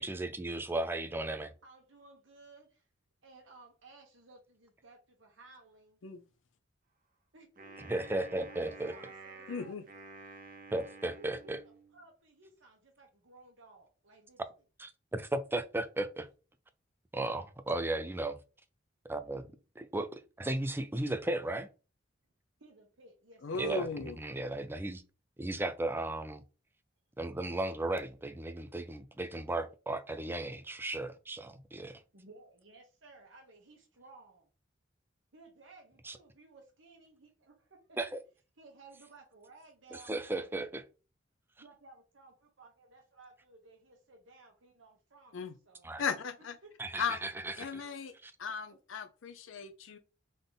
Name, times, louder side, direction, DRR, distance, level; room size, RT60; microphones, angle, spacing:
voice 1, 0.0-1.5 7.9-9.0 10.7-11.6 14.8-16.3 17.1-18.4 19.1-21.7 23.6-25.0 25.4-26.4 27.2-32.0 36.0-36.2 38.0-38.2 39.9-40.9 45.8-46.0 46.8-47.8 48.2-48.3, right 2 dB, 10° right, 0.4 m, -35 dB
voice 2, 1.6-2.9 3.2-6.0 7.3-7.9 8.5-10.0 11.2-14.4 22.6-23.7 32.1-34.5 35.3-38.0 38.6-40.6 41.6-45.9 46.6-46.7 47.8-47.9, right 3 dB, 75° right, 1.1 m, -57 dB
Wind instrument woodwind instrument, 7.6-12.0, right 3 dB, 45° right, 1.1 m, -51 dB
voice 3, 9.5-9.8 23.4-24.2 45.3-45.5 46.0-46.6 47.0-47.2 47.6-48.1 48.4-50.0, left 5 dB, 80° left, 0.5 m, -36 dB
3.7 x 3.5 x 3.9 m
head